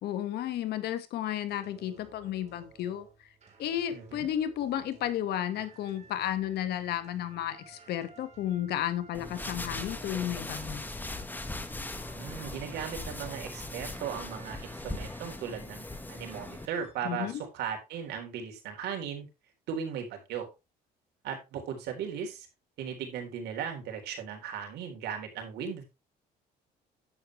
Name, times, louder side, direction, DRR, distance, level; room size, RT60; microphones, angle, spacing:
voice 1, 0.0-3.1 3.6-10.9 17.0-17.4, left 11 dB, 75° left, 10 dB, 1.8 m, -33 dB
sound 1, 1.5-16.9, right 5 dB, 40° right, 4.9 m, -56 dB
voice 2, 3.9-4.3 12.1-19.3 19.7-20.5 21.2-22.5 22.8-25.8, right 7 dB, 75° right, 3 dB, 3.9 m, -37 dB
sound 2, 9.1-16.7, left 2 dB, 10° left, 1.4 m, -39 dB
10.5 x 8.2 x 3.3 m, 0.25 s
cardioid pair, 110°, 17 cm